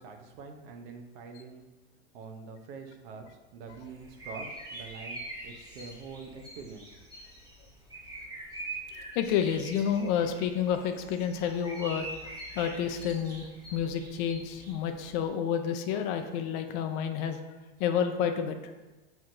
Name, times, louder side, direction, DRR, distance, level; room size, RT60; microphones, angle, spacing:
voice 1, 0.0-1.7 2.1-7.0, right 5 dB, 65° right, 4 dB, 0.8 m, -45 dB
sound 1, 3.7-15.3, right 2 dB, 10° right, 1.2 m, -44 dB
voice 2, 9.1-17.4 17.8-18.6, left 8 dB, 50° left, 7 dB, 0.5 m, -30 dB
6.1 x 2.8 x 2.6 m, 1.2 s
hypercardioid pair, 105°, 31 cm